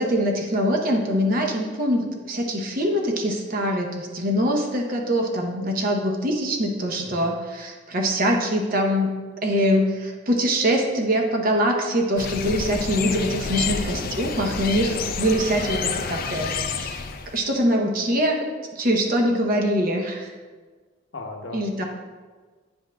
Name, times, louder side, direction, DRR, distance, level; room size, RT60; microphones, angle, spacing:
voice 1, 0.0-9.2 9.4-17.0 17.3-18.5 18.8-20.3 21.5-21.8, equal, 45° right, 2 dB, 0.8 m, -23 dB
voice 2, 7.0-7.3 13.6-14.1 14.8-15.1 21.1-21.6, left 2 dB, 70° left, 3 dB, 0.8 m, -38 dB
sound 1, 12.2-17.4, left 5 dB, 45° left, 0.4 m, -29 dB
9.8 x 5.4 x 2.3 m, 1.4 s
head